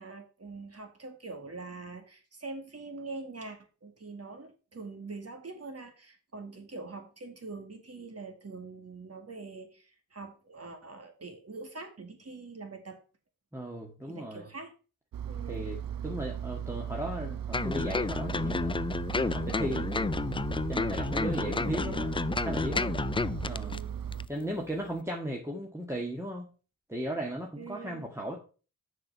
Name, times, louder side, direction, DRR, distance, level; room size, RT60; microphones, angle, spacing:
voice 1, 0.0-13.0 14.1-14.7 15.3-15.7 21.4-22.0 23.4-23.9 27.6-28.1, right 3 dB, 45° right, 5 dB, 2.3 m, -44 dB
voice 2, 13.5-14.5 15.5-15.8 16.0-18.8 19.1-20.1 20.7-22.9 23.5-23.8 24.3-26.5 26.9-28.4, right 1 dB, 5° right, -1 dB, 1.8 m, -36 dB
Engine, 15.1-24.3, right 9 dB, 70° right, 0.7 m, -37 dB
sound 1, 17.5-23.8 24.1-24.2, left 4 dB, 15° left, 0.3 m, -31 dB
6.6 x 6.0 x 5.6 m, 0.35 s
cardioid pair, 60°, 36 cm